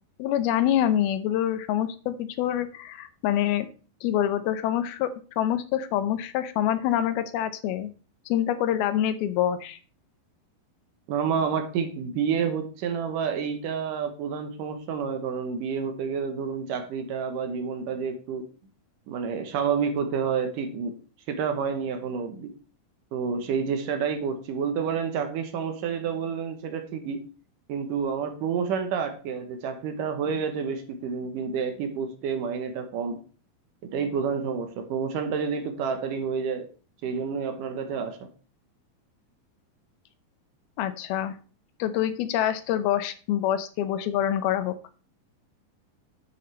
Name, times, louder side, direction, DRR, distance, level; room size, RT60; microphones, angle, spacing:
voice 1, 0.2-3.7 4.0-7.9 8.3-9.8 40.8-41.4 41.8-44.8, left 11 dB, 85° left, 11 dB, 2.7 m, -26 dB
voice 2, 11.1-18.4 19.1-20.9 21.3-22.5 23.1-27.2 27.7-33.2 33.8-36.7 37.0-38.2, right 6 dB, 70° right, 7 dB, 2.4 m, -29 dB
10.5 x 7.8 x 3.3 m, 0.38 s
omnidirectional pair, 4.3 m